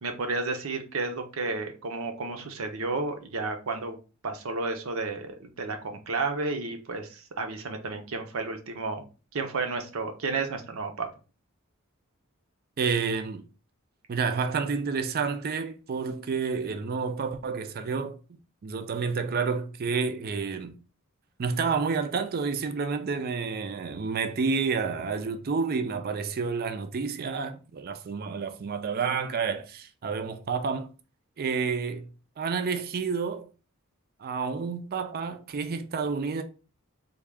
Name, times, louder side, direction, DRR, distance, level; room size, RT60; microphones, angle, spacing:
voice 1, 0.0-4.0 4.2-9.0 9.3-11.1, right 3 dB, 80° right, 0.7 m, -32 dB
voice 2, 12.8-13.5 14.1-18.2 18.6-20.8 21.4-30.9 31.4-32.1 32.4-33.5 34.2-36.4, right 5 dB, 45° right, 0.4 m, -29 dB
3.5 x 2.3 x 3.4 m
head